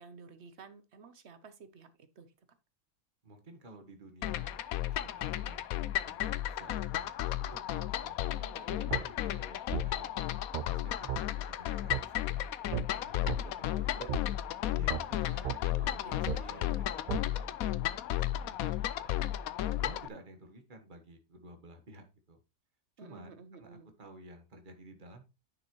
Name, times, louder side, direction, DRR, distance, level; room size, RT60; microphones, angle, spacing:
voice 1, 0.0-2.3 8.5-8.9 15.2-16.8 23.0-23.9, right 5 dB, 55° right, 10 dB, 1.2 m, -53 dB
voice 2, 3.2-12.5 13.0-17.9 18.1-19.2 19.8-22.4 23.0-25.2, right 2 dB, 35° right, 4 dB, 1.5 m, -53 dB
sound 1, 4.2-20.1, left 13 dB, 85° left, 1.1 m, -34 dB
sound 2, 8.9-9.0 9.7-9.9 10.5-10.7 11.1-11.2 11.9-12.0 12.7-12.9 13.3-13.4 14.1-14.2 14.9-15.0 15.4-15.6 16.3-16.4 17.1-17.2, right 9 dB, 80° right, 0.4 m, -34 dB
10.0 x 5.8 x 3.1 m, 0.29 s
omnidirectional pair, 1.5 m